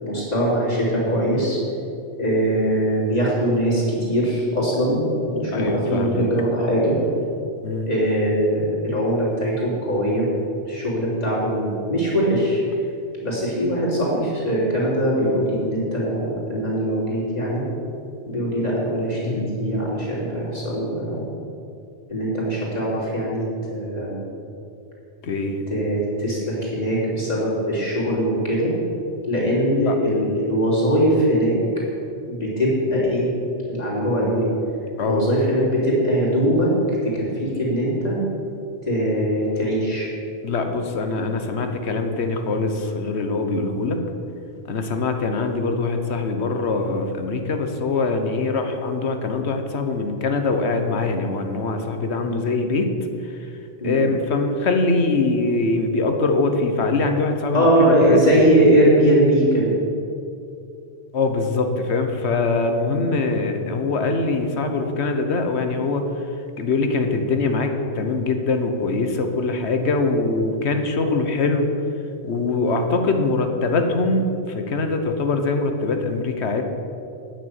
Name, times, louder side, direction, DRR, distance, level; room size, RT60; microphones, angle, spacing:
voice 1, 0.0-1.6 2.2-7.0 7.9-10.3 10.6-12.8 13.2-17.6 18.3-21.3 22.1-24.3 25.7-28.7 29.3-31.6 32.2-33.3 33.7-34.5 35.0-38.2 38.9-40.1 43.7-43.9 52.2-52.4 53.8-54.0 57.5-59.7 62.9-63.0, equal, 35° left, -6 dB, 3.4 m, -21 dB
voice 2, 5.5-6.3 7.6-7.9 19.2-19.4 25.2-25.6 29.8-30.0 35.0-35.3 40.4-44.0 44.7-52.9 53.2-53.5 53.8-58.4 61.1-66.3 66.6-71.7 72.2-76.6, left 3 dB, 75° left, 6 dB, 1.3 m, -23 dB
9.2 x 6.7 x 8.0 m, 2.6 s
omnidirectional pair, 1.1 m